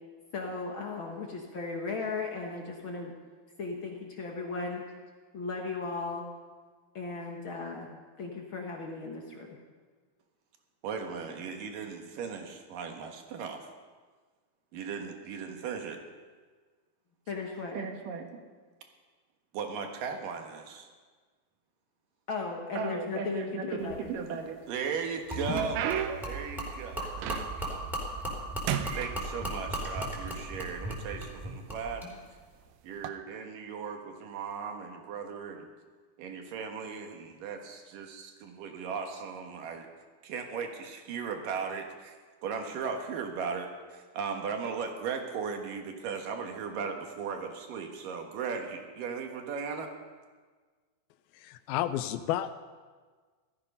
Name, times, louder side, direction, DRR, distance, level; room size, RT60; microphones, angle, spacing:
voice 1, 0.3-3.1 3.6-4.8 5.3-6.3 6.9-9.6 17.3-17.8 22.3-24.1, left 4 dB, 60° left, 1 dB, 1.3 m, -36 dB
voice 2, 10.8-13.6 14.7-16.0 17.7-18.3 19.5-20.9 22.8-27.8 28.9-32.1 32.8-35.7 36.2-39.9 40.2-42.2 42.4-49.9, right 5 dB, 70° right, 4 dB, 2.9 m, -37 dB
sound 1, 23.8-24.5 25.0-27.8 28.1-28.4 28.7-29.9 30.7-30.8 31.5-31.7 32.9-33.1, right 9 dB, 85° right, 2.7 m, -35 dB
Gurgling / Liquid, 25.3-32.1, right 1 dB, ahead, 3.2 m, -36 dB
voice 3, 51.3-52.6, left 12 dB, 85° left, 12 dB, 2.5 m, -31 dB
17.0 x 13.5 x 5.5 m, 1.5 s
omnidirectional pair, 4.3 m